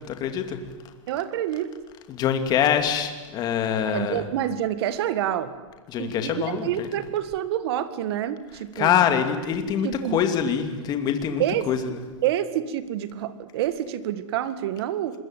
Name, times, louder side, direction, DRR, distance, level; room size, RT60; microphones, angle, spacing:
voice 1, 0.1-0.6 2.1-4.2 5.9-6.9 8.8-11.8, left 8 dB, 25° left, 7 dB, 2.6 m, -24 dB
voice 2, 1.1-1.7 3.8-5.5 6.0-9.0 9.8-10.2 11.4-11.7 12.2-15.2, right 11 dB, 50° right, 13 dB, 1.9 m, -27 dB
26.0 x 22.0 x 9.1 m, 1.3 s
supercardioid pair, 155°, 16 cm